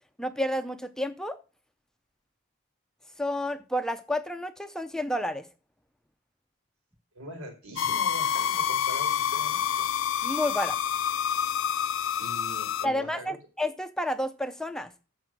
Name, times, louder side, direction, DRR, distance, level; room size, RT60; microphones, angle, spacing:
voice 1, 0.2-1.4 3.2-5.5 10.2-10.8 12.8-14.9, left 1 dB, 5° left, 8 dB, 0.6 m, -30 dB
voice 2, 7.1-9.8 12.2-13.3, right 1 dB, 90° right, 4 dB, 4.3 m, -42 dB
sound 1, 7.8-12.9, left 8 dB, 65° left, 0.4 m, -28 dB
14.0 x 4.8 x 6.0 m, 0.34 s
head